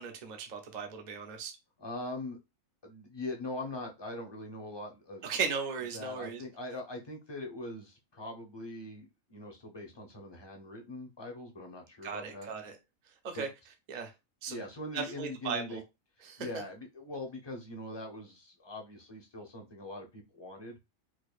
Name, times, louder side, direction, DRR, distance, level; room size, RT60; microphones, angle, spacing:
voice 1, 0.0-1.5 5.2-6.4 12.0-12.8 13.2-13.5 13.9-14.1 14.4-14.6 14.9-15.8 16.2-16.5, right 6 dB, 45° right, 5 dB, 0.7 m, -36 dB
voice 2, 1.8-2.4 2.8-5.3 5.9-12.5 13.3-13.5 14.5-15.8 16.4-20.8, left 2 dB, 25° left, 1 dB, 0.7 m, -42 dB
4.5 x 2.5 x 2.4 m, 0.24 s
omnidirectional pair, 1.4 m